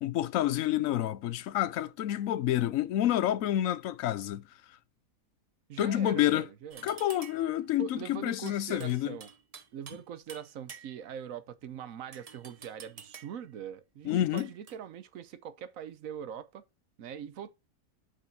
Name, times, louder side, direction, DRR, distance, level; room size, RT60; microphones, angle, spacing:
voice 1, 0.0-4.4 5.8-6.5 6.8-9.2 14.0-14.5, left 12 dB, 70° left, 1.0 m, -28 dB
voice 2, 5.7-6.9 7.8-9.3 9.7-16.6 17.0-17.5, right 8 dB, 65° right, 1.2 m, -42 dB
sound 1, 6.7-7.6 8.5-10.0 10.3-11.2 12.1-13.5 14.4-14.8, right 6 dB, 40° right, 0.5 m, -49 dB
6.1 x 5.7 x 5.9 m
omnidirectional pair, 1.6 m